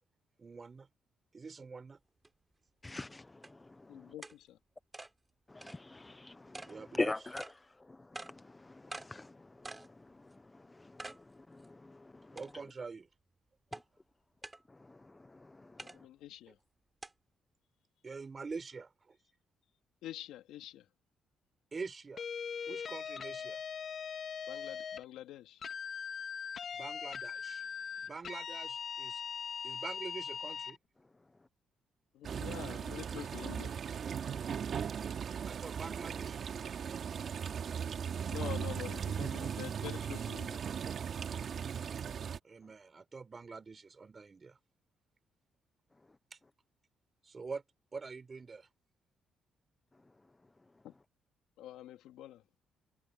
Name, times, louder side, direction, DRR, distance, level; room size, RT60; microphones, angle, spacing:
voice 1, 0.4-0.9 1.3-2.0 6.7-7.1 12.3-13.1 18.0-19.2 21.7-22.2 22.7-23.6 26.7-27.7 28.0-29.2 29.6-30.8 35.5-37.0 42.4-44.6 46.3-46.4 47.2-47.6 47.9-48.7, right 4 dB, 35° right, 4.8 m, -45 dB
sound 1, 2.2-2.3 3.0-3.1 3.4-3.5 4.2-4.4 4.9-5.1 5.6-5.8 6.5-6.7 7.4-7.5 8.1-8.3 8.9-9.1 9.6-9.9 10.3-10.4 11.0-11.2 11.6-11.7 12.4-12.8 13.7-13.8 14.4-14.6 15.8-16.0 17.0-17.1, right 2 dB, 15° right, 6.1 m, -45 dB
voice 2, 2.8-3.3 5.5-7.4 8.5-9.3 10.8-10.9 11.5-12.0, left 2 dB, 20° left, 0.5 m, -39 dB
voice 3, 3.9-4.6 15.8-16.6 20.0-20.9 24.5-25.6 32.1-33.8 38.3-40.6 50.8-50.9 51.6-52.4, left 13 dB, 90° left, 2.9 m, -46 dB
sound 2, 22.2-25.0 25.6-30.8, left 7 dB, 50° left, 1.7 m, -41 dB
sound 3, 32.2-42.4, right 7 dB, 55° right, 2.1 m, -38 dB
cardioid pair, 90°, 0 cm